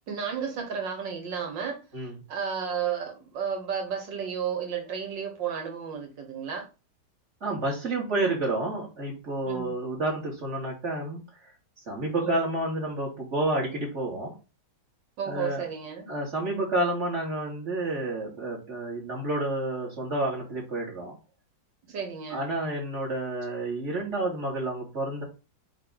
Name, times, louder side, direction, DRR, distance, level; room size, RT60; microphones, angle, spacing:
voice 1, 0.1-1.8 2.3-6.7 9.5-9.7 12.2-12.4 15.2-16.1 21.9-22.4, right 7 dB, 85° right, 2.0 m, -32 dB
voice 2, 7.4-11.2 11.9-14.3 15.2-15.6 16.1-21.2 22.3-25.2, right 2 dB, 40° right, 3.0 m, -30 dB
8.7 x 3.3 x 3.9 m
omnidirectional pair, 1.9 m